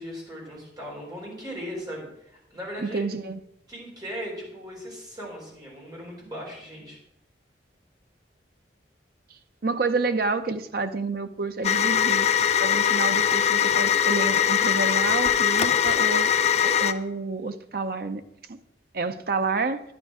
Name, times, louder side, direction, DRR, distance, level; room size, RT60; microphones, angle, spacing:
voice 1, 0.0-3.0 3.7-7.0, equal, 20° right, -3 dB, 4.2 m, -38 dB
voice 2, 2.8-3.4 9.6-12.3 12.6-16.3 16.6-18.2 18.5-18.6 18.9-19.8, right 3 dB, 55° right, 9 dB, 0.7 m, -29 dB
sound 1, 11.6-16.9, left 8 dB, 35° left, 0.5 m, -21 dB
10.5 x 9.9 x 4.9 m, 0.80 s
head